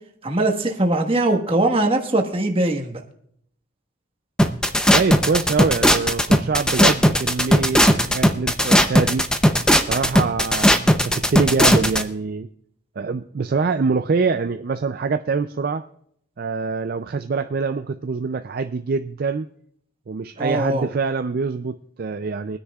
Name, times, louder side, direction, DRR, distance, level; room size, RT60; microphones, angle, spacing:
voice 1, 0.2-3.0 20.4-20.9, right 2 dB, 25° right, 3 dB, 1.4 m, -21 dB
sound 1, 4.4-12.0, equal, 5° left, 0.6 m, -16 dB
voice 2, 4.9-9.2 9.8-12.5 13.0-15.8 16.4-19.5 20.1-22.6, right 4 dB, 45° right, 9 dB, 0.4 m, -24 dB
23.5 x 9.9 x 2.4 m, 0.67 s
head